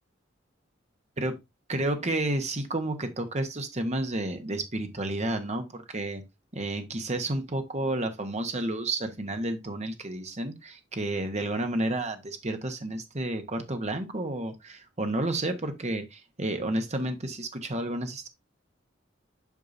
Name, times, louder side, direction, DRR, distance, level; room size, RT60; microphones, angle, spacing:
voice 1, 1.7-6.2 6.5-18.3, right 1 dB, 35° right, 1.2 m, -31 dB
8.3 x 5.6 x 2.7 m
head